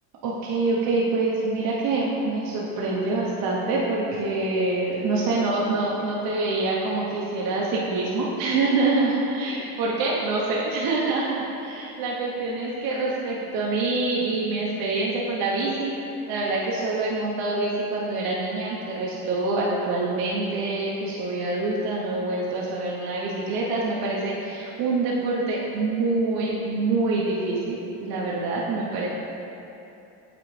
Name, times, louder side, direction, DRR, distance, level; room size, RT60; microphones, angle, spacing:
voice 1, 0.2-29.1, right 3 dB, 60° right, -5 dB, 0.9 m, -26 dB
7.7 x 4.1 x 3.2 m, 2.9 s
cardioid pair, 135°, 40 cm